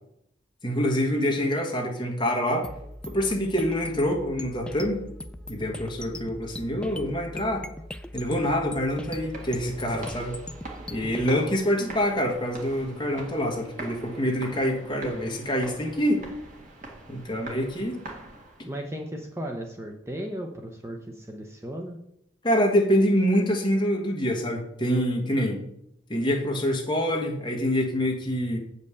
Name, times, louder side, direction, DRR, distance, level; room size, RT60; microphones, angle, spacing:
voice 1, 0.6-2.7 3.1-5.0 5.5-7.6 8.1-10.4 10.9-16.2 17.1-18.0 22.4-25.6 26.1-28.6, equal, 25° left, 1 dB, 1.4 m, -26 dB
sound 1, 2.6-11.3, left 1 dB, 5° left, 0.3 m, -40 dB
sound 2, 8.8-18.8, right 2 dB, 40° right, 1.8 m, -43 dB
voice 2, 11.0-11.4 18.6-22.0, right 1 dB, 15° right, 2 dB, 0.7 m, -36 dB
8.1 x 5.4 x 6.8 m, 0.77 s
head